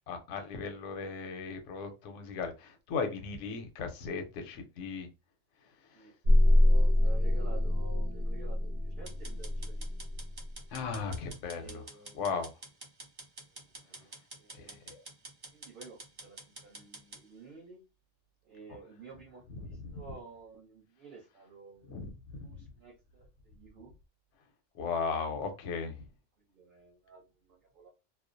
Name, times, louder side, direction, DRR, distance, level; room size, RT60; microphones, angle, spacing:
voice 1, 0.1-5.1 5.6-6.1 10.7-11.8 12.1-12.5 14.6-15.0 19.8-20.0 21.9-22.5 24.7-26.1, left 5 dB, 85° left, 0.9 m, -37 dB
voice 2, 5.9-9.9 11.4-12.2 13.5-14.8 15.1-17.8 18.4-22.0 22.4-23.9 26.5-27.9, right 4 dB, 50° right, 0.9 m, -52 dB
sound 1, 6.2-10.5, left 1 dB, 85° right, 1.0 m, -26 dB
sound 2, 9.1-17.2, right 2 dB, 35° right, 0.4 m, -48 dB
2.4 x 2.0 x 2.5 m
omnidirectional pair, 1.2 m